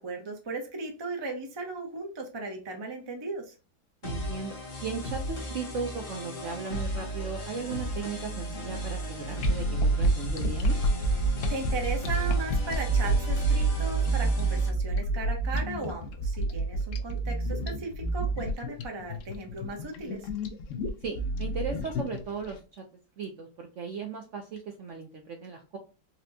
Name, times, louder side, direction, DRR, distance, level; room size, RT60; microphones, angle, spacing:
voice 1, 0.0-3.5 11.5-20.2, right 3 dB, 30° right, 1 dB, 0.5 m, -37 dB
sound 1, 4.0-14.7, left 1 dB, 40° left, 0.8 m, -35 dB
voice 2, 4.0-4.5 4.8-10.8 21.0-22.6 23.2-25.8, right 5 dB, 65° right, 2 dB, 0.8 m, -36 dB
sound 2, 9.4-22.5, right 2 dB, 70° left, 0.8 m, -28 dB
4.1 x 2.2 x 2.6 m, 0.33 s
omnidirectional pair, 1.8 m